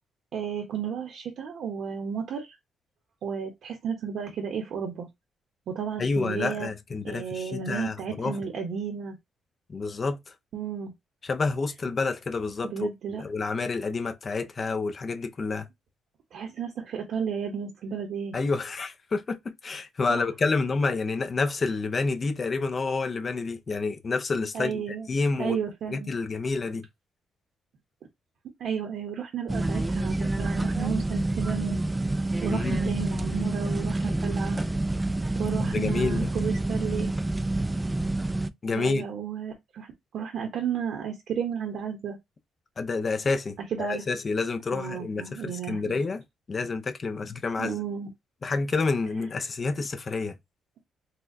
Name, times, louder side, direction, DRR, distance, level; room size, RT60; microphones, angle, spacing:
voice 1, 0.3-2.6 3.2-5.1 5.7-6.7 7.0-9.2 10.5-10.9 12.6-13.2 16.3-18.4 20.1-20.2 24.5-25.1 25.4-26.1 28.6-31.8 32.4-34.6 35.4-37.1 38.7-39.9 40.1-42.2 43.8-44.0 44.7-46.0 47.6-48.1, right 7 dB, 70° right, 0.8 m, -33 dB
voice 2, 6.0-8.4 9.7-10.3 11.2-15.7 18.3-24.8 25.1-25.6 25.9-26.9 32.5-32.8 35.6-36.3 38.6-39.0 42.8-46.2 46.5-47.8 48.4-50.4, left 4 dB, 40° left, 0.6 m, -29 dB
sound 1, 29.5-38.5, right 2 dB, 15° right, 0.3 m, -28 dB
4.1 x 2.3 x 2.6 m
cardioid pair, 90°, 0 cm